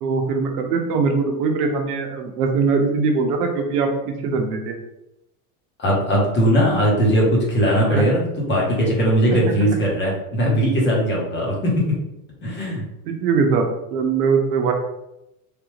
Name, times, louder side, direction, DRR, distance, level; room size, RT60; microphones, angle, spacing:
voice 1, 0.0-4.7 7.9-8.0 9.3-9.4 13.1-14.7, right 4 dB, 80° right, 4 dB, 0.8 m, -21 dB
voice 2, 5.8-11.8 12.4-12.8, equal, 25° left, -4 dB, 1.0 m, -19 dB
3.3 x 2.4 x 3.1 m, 0.89 s
supercardioid pair, 140°, 46 cm